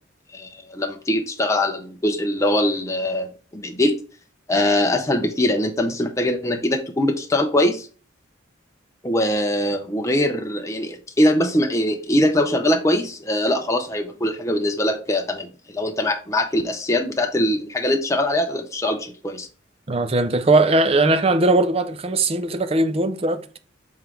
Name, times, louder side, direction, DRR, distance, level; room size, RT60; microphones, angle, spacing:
voice 1, 0.3-3.9 4.5-7.9 9.0-19.5, left 1 dB, 15° left, 0.6 m, -22 dB
voice 2, 19.9-23.6, right 2 dB, 30° right, 0.5 m, -19 dB
5.5 x 3.7 x 4.6 m
head